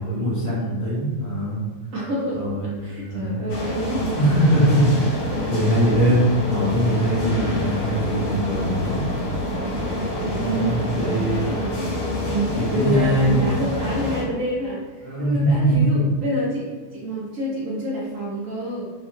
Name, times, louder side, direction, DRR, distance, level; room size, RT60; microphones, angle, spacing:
voice 1, 0.0-1.6 2.3-3.4 4.2-9.1 10.3-11.5 12.5-13.4 15.0-16.1, right 1 dB, 10° left, -11 dB, 1.3 m, -22 dB
voice 2, 1.9-2.4 2.8-4.2 5.3-6.0 7.1-7.5 10.2-11.3 12.3-18.9, right 1 dB, 70° right, -5 dB, 0.8 m, -28 dB
sound 1, 3.5-14.2, left 1 dB, 80° left, 1.3 m, -27 dB
2.8 x 2.4 x 2.6 m, 1.5 s
omnidirectional pair, 1.8 m